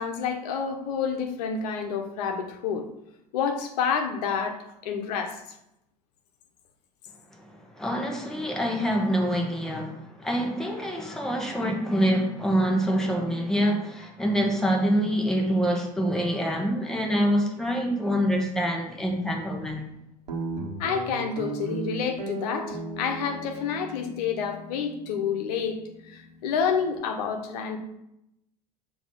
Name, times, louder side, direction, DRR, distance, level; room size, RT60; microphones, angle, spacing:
voice 1, 0.0-2.9 3.3-5.4 20.8-27.8, left 6 dB, 70° left, 5 dB, 1.1 m, -29 dB
voice 2, 7.7-19.8, equal, ahead, 0 dB, 1.5 m, -26 dB
Guitar, 20.3-27.0, right 2 dB, 90° right, 1.3 m, -37 dB
7.0 x 3.1 x 5.7 m, 0.84 s
hypercardioid pair, 80°, 21 cm